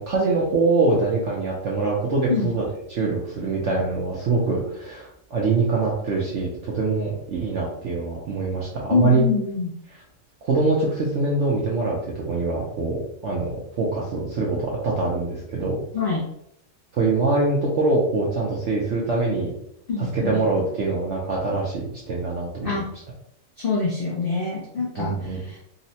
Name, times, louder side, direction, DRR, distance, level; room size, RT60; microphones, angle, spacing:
voice 1, 0.0-2.6 2.9-9.2 10.4-15.8 16.9-19.5 20.1-22.8 25.0-25.4, right 3 dB, 70° right, -4 dB, 0.7 m, -24 dB
voice 2, 8.9-9.7 15.9-16.2 19.9-20.4 22.6-22.9 23.6-25.6, left 4 dB, 90° left, -4 dB, 0.4 m, -25 dB
3.9 x 2.1 x 2.7 m, 0.74 s
omnidirectional pair, 1.9 m